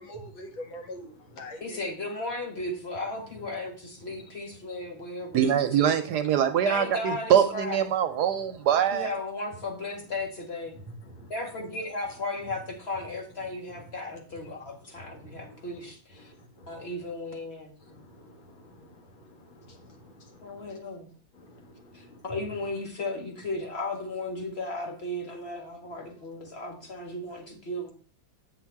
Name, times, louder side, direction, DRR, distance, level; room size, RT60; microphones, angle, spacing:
voice 1, 0.0-1.8 10.7-11.3 13.4-13.8 14.4-14.5 15.0-15.8 16.1-16.3 16.6-16.9 17.9-18.9 19.6-20.7 21.5-22.1, equal, 80° left, 1 dB, 2.6 m, -46 dB
voice 2, 1.6-5.5 5.9-6.0 6.7-7.8 8.7-10.8 11.3-16.3 16.7-17.7 20.4-21.1 21.9-27.9, left 2 dB, 35° left, 2 dB, 1.9 m, -35 dB
voice 3, 5.3-9.1, right 9 dB, 70° right, 9 dB, 1.1 m, -23 dB
8.6 x 5.8 x 4.6 m, 0.41 s
omnidirectional pair, 2.1 m